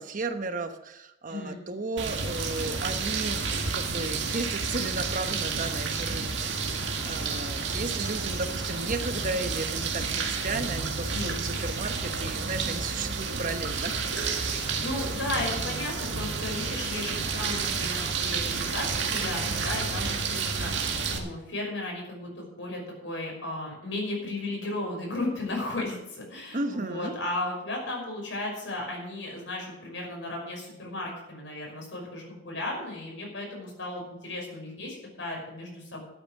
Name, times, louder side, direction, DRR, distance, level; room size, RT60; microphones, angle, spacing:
voice 1, 0.0-6.3 6.6-14.0 26.5-27.1, right 2 dB, 45° right, 8 dB, 1.1 m, -34 dB
sound 1, 2.0-21.2, right 4 dB, 70° right, 1.9 m, -30 dB
voice 2, 11.1-11.4 14.4-36.0, left 2 dB, 80° left, 0 dB, 5.8 m, -35 dB
12.5 x 8.9 x 6.5 m, 0.85 s
head